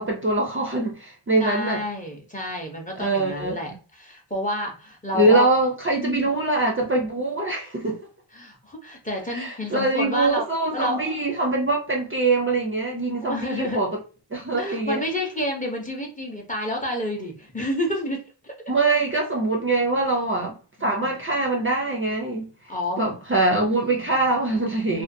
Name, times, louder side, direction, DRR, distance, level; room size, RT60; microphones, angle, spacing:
voice 1, 0.0-1.8 3.0-3.6 5.1-8.0 9.3-13.9 14.3-15.0 18.7-22.5 23.0-25.0, right 2 dB, 30° right, 0.4 m, -23 dB
voice 2, 1.4-5.5 6.0-6.3 8.3-10.4 10.7-11.1 13.2-13.8 14.6-18.5 20.8-21.2 22.7-23.2 23.7-24.1 24.8-25.0, left 1 dB, 15° left, 0.6 m, -30 dB
2.5 x 2.3 x 2.5 m
wide cardioid pair, 115°, 47 cm